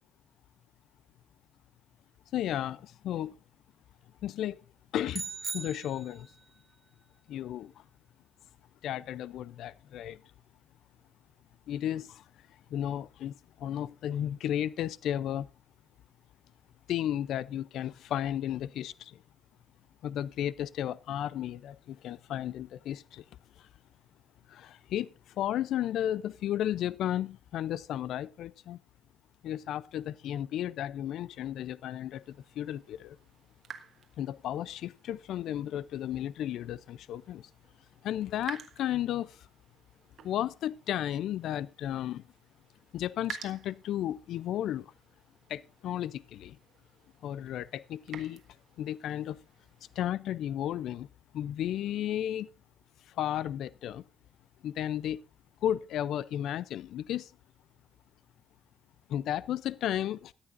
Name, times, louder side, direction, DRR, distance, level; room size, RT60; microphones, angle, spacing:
voice 1, 2.3-3.3 4.2-4.6 4.9-6.3 7.3-7.7 8.8-10.2 11.7-12.2 12.7-15.5 16.9-19.2 20.0-23.2 24.5-28.8 29.4-33.2 34.2-37.5 38.0-39.5 40.2-42.2 42.9-44.9 45.5-46.6 47.2-48.4 48.8-49.4 50.0-51.1 51.3-52.5 53.1-54.0 54.6-55.2 55.6-57.3 59.1-60.3, left 11 dB, 80° left, 0.5 m, -33 dB
sound 1, 5.1-6.4, right 5 dB, 40° right, 0.6 m, -39 dB
sound 2, 32.1-50.0, right 8 dB, 60° right, 1.5 m, -52 dB
13.5 x 11.5 x 2.5 m
cardioid pair, 90°, 0 cm